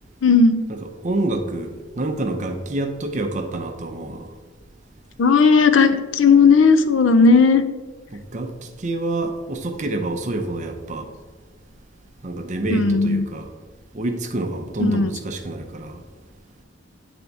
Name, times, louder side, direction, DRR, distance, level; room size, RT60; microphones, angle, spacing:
voice 1, 0.2-0.6 5.2-7.6 12.7-13.2 14.8-15.1, left 4 dB, 70° left, 0.5 m, -15 dB
voice 2, 1.0-4.3 8.1-11.1 12.2-13.5 13.9-16.0, right 2 dB, 40° right, 0.6 m, -27 dB
9.1 x 3.4 x 4.0 m
head